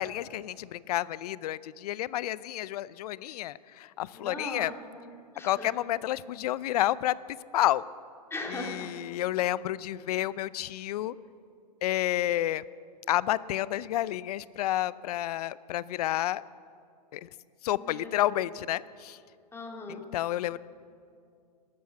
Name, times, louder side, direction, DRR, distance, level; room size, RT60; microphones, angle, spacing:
voice 1, 0.0-4.7 5.4-7.8 8.5-11.1 11.8-12.6 13.1-16.4 17.1-17.3 17.6-19.2 20.1-20.6, left 14 dB, 65° left, 19 dB, 0.5 m, -30 dB
voice 2, 4.1-5.7 8.3-8.9 17.7-18.3 19.5-20.0, left 2 dB, 10° left, 1 dB, 2.6 m, -40 dB
13.5 x 13.0 x 7.7 m, 2.3 s
hypercardioid pair, 115°, 21 cm